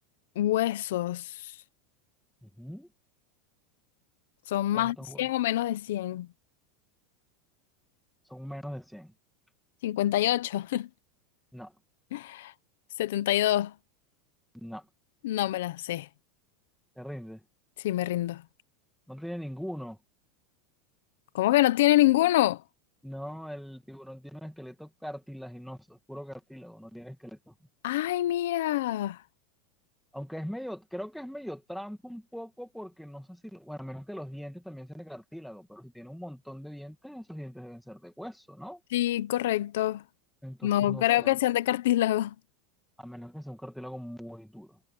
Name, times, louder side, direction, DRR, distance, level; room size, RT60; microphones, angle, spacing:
voice 1, 0.3-1.5 4.5-6.3 9.8-10.9 12.1-12.5 13.0-13.7 15.2-16.1 17.8-18.4 21.3-22.6 27.8-29.2 38.9-40.0 40.6-42.3, left 14 dB, 80° left, 1.1 m, -26 dB
voice 2, 2.4-2.9 4.7-5.3 8.3-9.1 11.5-11.8 14.5-14.9 17.0-17.5 19.1-20.0 23.0-27.5 30.1-38.8 40.4-41.4 43.0-44.9, equal, ahead, 2.0 m, -41 dB
supercardioid pair, 140°, 0 cm